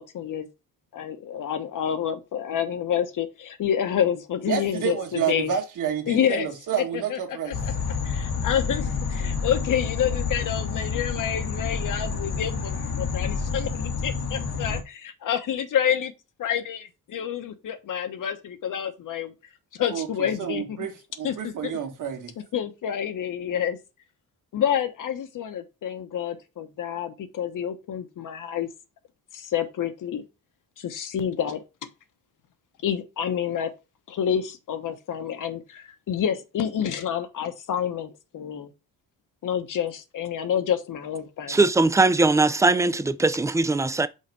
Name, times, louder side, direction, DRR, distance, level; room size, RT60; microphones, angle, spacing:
voice 1, 0.1-0.5 0.9-5.5 6.1-6.5 6.8-7.5 8.0-16.1 16.4-19.3 19.7-20.9 21.2-21.8 22.5-23.8 24.5-28.7 29.3-30.2 30.8-31.6 32.8-33.7 34.1-38.7 39.4-41.6 42.8-42.9, left 9 dB, 55° left, 1.1 m, -28 dB
voice 2, 4.5-7.5 19.9-20.1 20.4-20.9 21.2-22.3, right 8 dB, 55° right, 1.8 m, -29 dB
sound 1, 7.5-14.8, left 5 dB, 80° left, 1.6 m, -29 dB
voice 3, 41.5-44.1, right 3 dB, 10° right, 0.3 m, -20 dB
5.7 x 4.0 x 4.7 m
cardioid pair, 125°, 37 cm